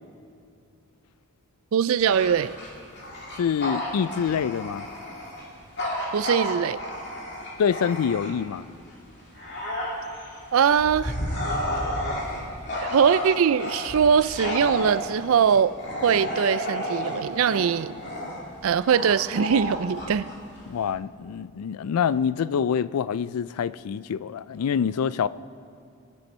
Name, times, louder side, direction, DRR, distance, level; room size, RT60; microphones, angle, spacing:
voice 1, 1.7-2.6 6.1-6.8 10.5-11.1 12.8-17.9 18.6-20.3, right 7 dB, 70° right, 0.4 m, -22 dB
Bark / Growling, 2.0-8.6 9.0-20.9, left 1 dB, 50° left, 2.5 m, -32 dB
voice 2, 3.4-4.9 7.6-8.7 20.7-25.3, left 7 dB, 85° left, 0.4 m, -26 dB
22.0 x 10.5 x 4.3 m
head